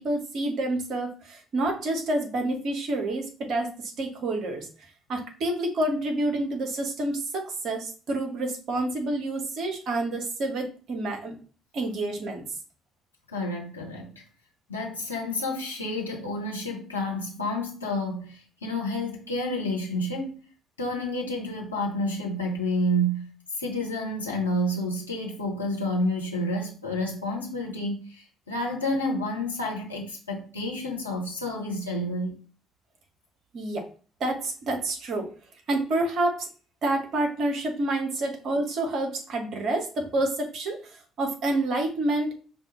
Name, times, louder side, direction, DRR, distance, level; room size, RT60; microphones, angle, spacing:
voice 1, 0.0-4.7 5.1-11.4 11.7-12.5 33.5-33.9 34.2-35.3 35.7-36.5 36.8-42.3, right 2 dB, 50° right, 0.9 m, -28 dB
voice 2, 13.3-14.2 14.7-20.3 20.8-23.3 23.6-32.4, left 1 dB, 85° left, 0.8 m, -29 dB
5.2 x 2.3 x 3.0 m
figure-of-eight pair, 50°, 0 cm